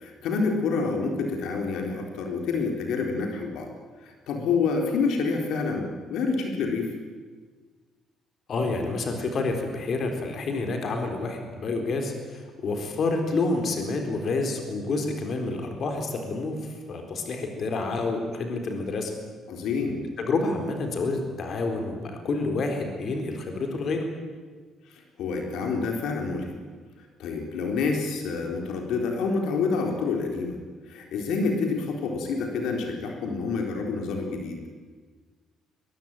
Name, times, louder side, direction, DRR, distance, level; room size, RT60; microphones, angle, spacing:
voice 1, 0.0-3.7 4.0-6.9 19.5-20.0 24.9-26.6 27.2-30.6 30.9-34.6, left 4 dB, 75° left, 2 dB, 4.1 m, -28 dB
voice 2, 8.5-19.1 20.2-24.1, left 3 dB, 45° left, 4 dB, 4.2 m, -28 dB
22.5 x 22.5 x 9.2 m, 1.5 s
cardioid pair, 145°, 0 cm